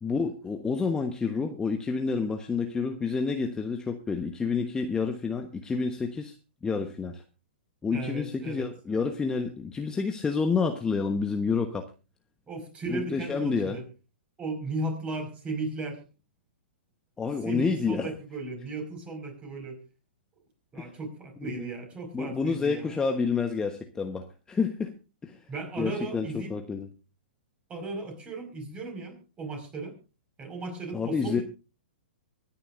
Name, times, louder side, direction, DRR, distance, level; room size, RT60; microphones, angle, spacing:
voice 1, 0.0-6.3 6.6-7.2 7.8-11.8 12.9-13.8 17.2-18.1 20.8-20.9 21.4-21.7 22.1-24.9 25.2-25.4 25.8-26.9 30.9-31.4, left 5 dB, 10° left, 5 dB, 1.1 m, -29 dB
voice 2, 7.9-8.7 12.5-13.8 14.4-16.0 17.4-19.8 20.7-22.9 25.5-26.5 27.7-30.0 30.4-31.4, right 2 dB, 20° right, 4 dB, 5.2 m, -36 dB
24.5 x 10.0 x 2.6 m, 0.32 s
hypercardioid pair, 120°, 6 cm